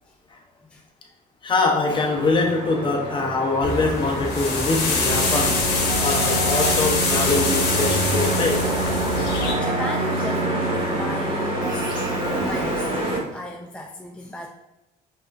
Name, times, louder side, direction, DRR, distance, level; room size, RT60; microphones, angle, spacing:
voice 1, 1.4-5.6 6.0-8.6, left 3 dB, 30° left, 1 dB, 0.8 m, -23 dB
sound 1, 2.0-13.2, right 1 dB, 30° right, 1.2 m, -28 dB
sound 2, 3.6-9.5, left 4 dB, 80° left, 0.9 m, -24 dB
Keyboard (musical), 5.0-13.1, right 3 dB, 60° right, 0.9 m, -28 dB
voice 2, 9.6-14.5, left 1 dB, 5° left, 0 dB, 0.3 m, -36 dB
5.4 x 2.5 x 2.4 m, 0.97 s
cardioid pair, 110°, 17 cm